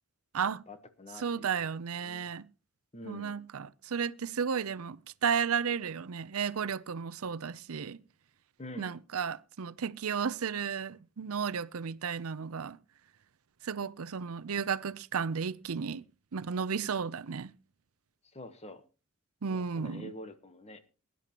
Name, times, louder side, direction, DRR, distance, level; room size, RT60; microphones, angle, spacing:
voice 1, 0.7-1.5 2.0-2.3 2.9-3.4 8.6-9.0 18.2-18.8 19.5-20.9, left 1 dB, 30° left, 1.1 m, -46 dB
voice 2, 1.2-2.5 3.0-8.0 8.8-12.8 13.6-16.0 16.3-17.5 19.4-20.1, right 6 dB, 80° right, 0.6 m, -33 dB
22.0 x 10.5 x 2.9 m
head